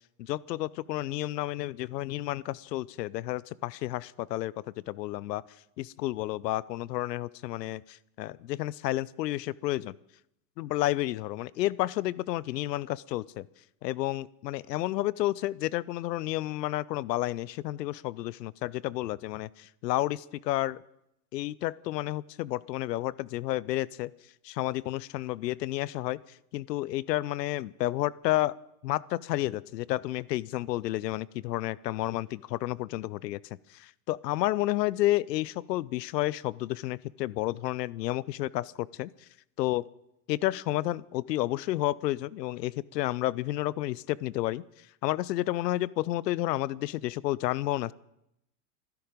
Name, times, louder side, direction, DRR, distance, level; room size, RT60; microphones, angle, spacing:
voice 1, 0.2-4.5 4.9-5.4 5.8-10.0 10.6-13.5 13.8-20.8 21.3-24.1 24.4-26.2 26.5-28.5 28.8-33.4 33.7-39.1 39.6-39.9 40.3-44.6 45.0-47.9, left 16 dB, 80° left, 22 dB, 0.7 m, -31 dB
25.5 x 11.0 x 5.2 m, 0.80 s
hypercardioid pair, 110°, 48 cm